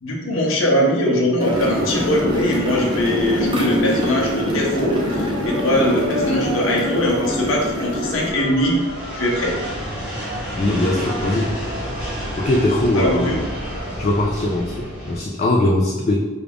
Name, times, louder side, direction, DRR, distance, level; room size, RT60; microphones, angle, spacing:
voice 1, 0.0-8.8 9.1-9.5 12.9-13.4, left 1 dB, 70° left, -2 dB, 0.7 m, -21 dB
sound 1, 1.4-8.3, equal, 25° right, 0.6 m, -24 dB
sound 2, 1.5-14.2, equal, 75° right, 0.7 m, -33 dB
sound 3, 7.0-15.2, equal, 5° right, 1.0 m, -32 dB
voice 2, 10.6-11.5 12.4-13.4 14.0-16.3, left 1 dB, 35° left, -1 dB, 0.3 m, -20 dB
4.8 x 2.3 x 3.4 m, 1.2 s
head